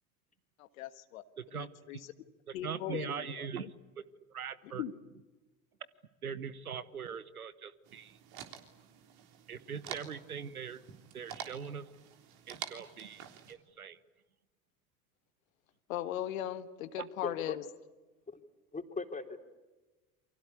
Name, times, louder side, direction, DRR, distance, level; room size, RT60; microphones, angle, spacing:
voice 1, 0.6-1.2 1.5-2.0 2.5-3.5 4.8-4.9 15.9-17.6, left 12 dB, 70° left, 11 dB, 1.6 m, -38 dB
voice 2, 1.4-1.7 2.5-3.7 4.0-4.1 4.3-4.8 6.2-8.2 9.5-10.8 11.1-11.9 12.5-14.0, right 7 dB, 90° right, 16 dB, 1.2 m, -41 dB
sound 1, 7.9-13.5, right 9 dB, 55° right, 3.6 m, -48 dB
voice 3, 17.2-17.6 18.3-18.4 18.7-19.4, left 3 dB, 20° left, 5 dB, 3.6 m, -39 dB
29.0 x 24.0 x 8.4 m, 1.2 s
hypercardioid pair, 70°, 42 cm